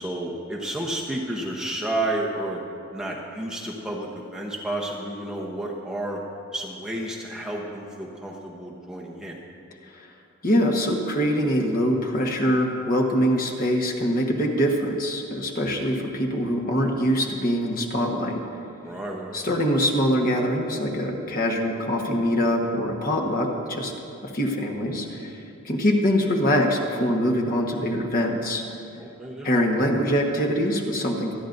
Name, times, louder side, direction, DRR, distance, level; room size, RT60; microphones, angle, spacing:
voice 1, 0.0-2.6 2.9-6.2 6.5-9.4 18.8-19.4 29.0-29.5, right 1 dB, 5° right, -3 dB, 0.9 m, -31 dB
voice 2, 10.4-18.4 19.3-23.9 24.3-25.3 25.6-28.6 29.4-31.3, equal, 40° left, 0 dB, 1.3 m, -23 dB
25.5 x 10.0 x 2.6 m, 2.6 s
head